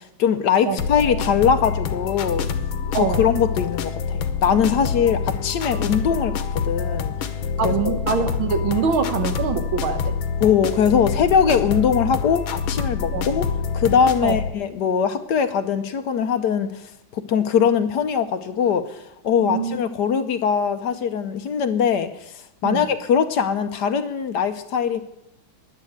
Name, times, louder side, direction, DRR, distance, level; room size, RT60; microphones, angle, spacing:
voice 1, 0.0-2.5 2.9-7.1 7.6-8.0 10.4-13.4 13.7-16.8 17.1-25.0, left 7 dB, 65° left, 10 dB, 1.3 m, -21 dB
sound 1, 0.8-14.5, left 6 dB, 90° left, 1.7 m, -26 dB
voice 2, 2.9-3.2 7.6-10.2 13.1-13.3 14.2-14.4 19.4-19.8 22.6-22.9, right 6 dB, 85° right, 9 dB, 1.9 m, -24 dB
10.5 x 10.5 x 8.0 m, 0.84 s
omnidirectional pair, 2.2 m